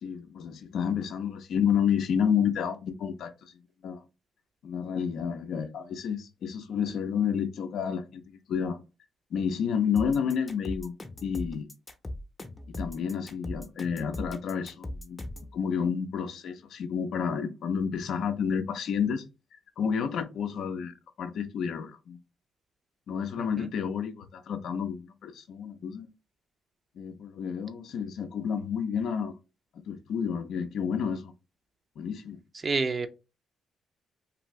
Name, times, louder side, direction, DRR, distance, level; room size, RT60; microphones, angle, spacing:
voice 1, 0.0-3.3 3.8-4.0 4.6-8.2 8.5-8.8 9.3-10.9 11.2-11.7 12.7-19.2 19.8-20.9 21.2-22.2 23.1-26.1 27.0-29.3 29.9-31.3 32.0-32.4, left 7 dB, 70° left, 0.5 m, -30 dB
sound 1, 10.0-15.5, left 1 dB, 25° left, 0.6 m, -39 dB
voice 2, 23.4-23.7 32.6-33.1, right 4 dB, 35° right, 0.4 m, -29 dB
2.6 x 2.6 x 3.1 m
cardioid pair, 90°, 0 cm